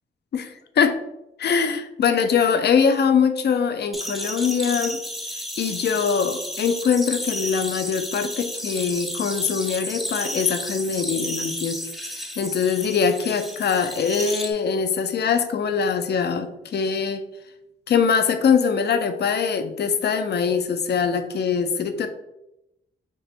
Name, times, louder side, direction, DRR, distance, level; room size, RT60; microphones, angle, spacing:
voice 1, 0.3-1.0 1.4-5.0 5.3-11.8 12.1-17.2 17.9-22.1, left 6 dB, 55° left, 8 dB, 0.5 m, -22 dB
sound 1, 3.9-14.5, equal, ahead, 0.5 m, -32 dB
4.2 x 2.5 x 3.3 m, 0.87 s
wide cardioid pair, 100°, 20 cm